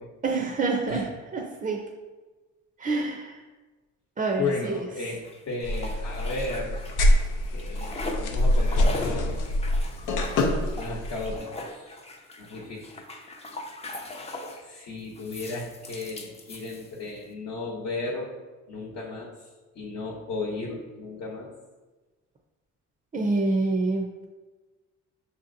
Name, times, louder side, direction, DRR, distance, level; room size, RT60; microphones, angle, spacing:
voice 1, 0.2-1.8 2.8-3.4 4.2-4.7 23.1-24.2, right 3 dB, 25° right, 1 dB, 0.5 m, -27 dB
voice 2, 4.4-6.8 7.5-9.3 10.7-11.9 12.4-13.0 14.6-18.3 18.7-19.3 19.7-21.5, left 3 dB, 60° left, -3 dB, 0.9 m, -34 dB
sound 1, 5.2-7.2 7.5-14.7 15.1-17.2, left 2 dB, 20° left, 0.5 m, -40 dB
spraying perfume, 5.6-11.4, left 1 dB, 85° left, 0.6 m, -25 dB
6.4 x 2.8 x 2.6 m, 1.2 s
cardioid pair, 90°, 30 cm